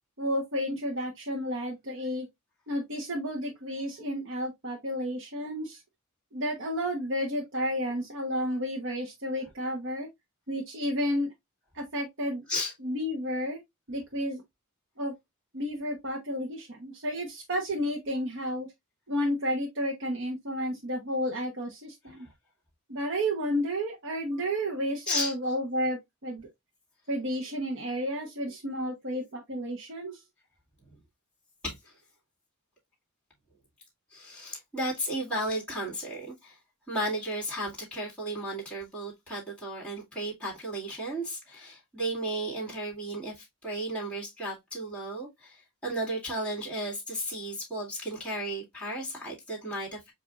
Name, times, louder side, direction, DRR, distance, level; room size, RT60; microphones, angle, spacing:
voice 1, 0.2-2.3 2.7-5.8 6.3-10.1 10.5-11.3 11.7-12.5 12.8-13.6 13.9-14.4 15.0-15.1 15.5-18.7 19.1-22.3 22.9-26.5 27.1-30.2, equal, 60° right, 1.0 m, -31 dB
voice 2, 34.1-36.6 36.9-50.1, right 1 dB, 5° left, 2.2 m, -34 dB
7.0 x 2.7 x 2.4 m
head